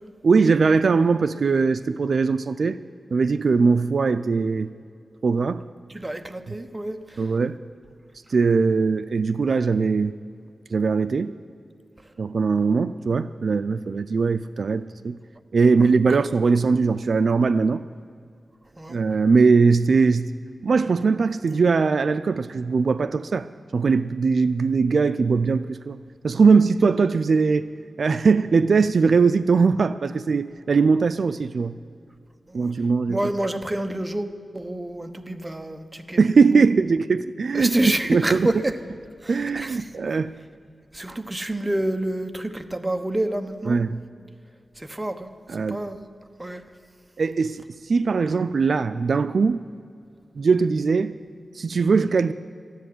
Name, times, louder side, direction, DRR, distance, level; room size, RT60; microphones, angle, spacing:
voice 1, 0.2-2.8 3.1-4.7 5.2-5.6 7.2-7.6 8.3-10.1 10.7-11.3 12.2-15.2 15.5-17.8 18.9-20.3 20.6-23.5 23.7-26.0 26.2-27.7 28.0-31.7 32.5-33.2 36.2-37.8 38.1-38.5 39.3-40.3 43.6-44.0 45.5-45.8 47.2-49.6 50.4-51.2 51.5-52.3, right 4 dB, 70° right, 13 dB, 0.4 m, -20 dB
voice 2, 5.9-7.0 18.8-19.0 32.5-32.7 33.1-36.6 37.5-38.8 39.2-39.9 40.9-43.8 44.8-45.3 45.7-46.0 46.4-46.6, right 1 dB, 20° right, 8 dB, 1.0 m, -28 dB
13.5 x 10.5 x 9.4 m, 2.4 s
wide cardioid pair, 90°, 0 cm